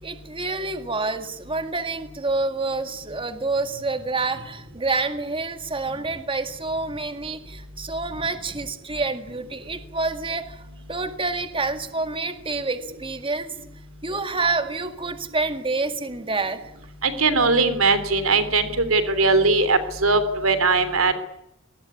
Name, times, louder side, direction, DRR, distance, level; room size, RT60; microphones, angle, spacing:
voice 1, 0.0-10.6 10.9-13.5 14.0-16.6, right 3 dB, 25° right, 8 dB, 1.9 m, -28 dB
voice 2, 17.0-21.1, right 3 dB, 90° right, 12 dB, 3.3 m, -20 dB
23.0 x 19.5 x 9.7 m, 0.86 s
head